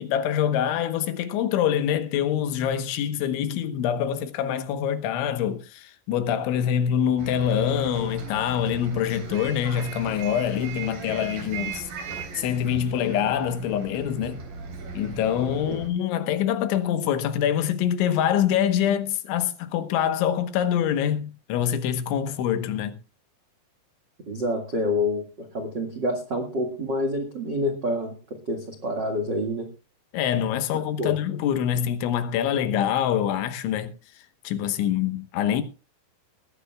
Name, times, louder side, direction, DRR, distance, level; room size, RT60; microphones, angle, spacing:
voice 1, 0.0-11.9 12.3-14.4 14.9-23.0 30.1-34.0 34.4-35.6, left 9 dB, 80° left, 3.5 m, -25 dB
Bus, 7.2-15.9, right 5 dB, 50° right, 4.9 m, -38 dB
voice 2, 24.3-25.2 25.5-29.7 30.7-31.1, left 1 dB, 75° right, 1.0 m, -27 dB
20.5 x 15.0 x 2.3 m
omnidirectional pair, 5.5 m